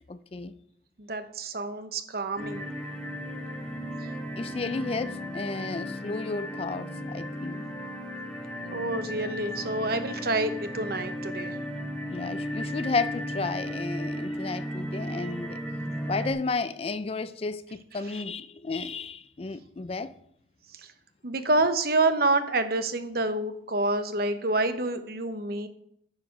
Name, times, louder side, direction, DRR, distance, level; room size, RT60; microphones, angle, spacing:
voice 1, 0.1-0.5 4.4-7.7 12.1-15.6 16.1-20.1, left 3 dB, 30° left, 0.4 m, -32 dB
voice 2, 1.0-2.7 8.7-11.5 21.2-25.7, right 2 dB, 55° right, 0.9 m, -27 dB
sound 1, 2.4-16.3, equal, 5° left, 1.7 m, -35 dB
9.6 x 6.8 x 6.0 m
head